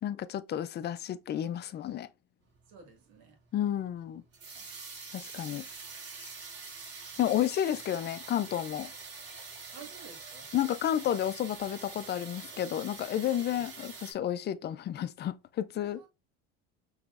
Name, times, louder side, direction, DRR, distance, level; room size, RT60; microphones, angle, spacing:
voice 1, 0.0-2.1 3.5-4.2 5.1-5.6 6.2-6.3 7.2-8.9 10.5-16.1, left 11 dB, 35° left, 0.4 m, -31 dB
sound 1, 2.5-14.1, right 4 dB, 50° right, 2.8 m, -45 dB
voice 2, 2.7-3.4 9.7-10.5 13.5-13.6 15.7-16.1, right 5 dB, 80° right, 2.0 m, -52 dB
6.1 x 3.1 x 2.5 m
supercardioid pair, 110°, 31 cm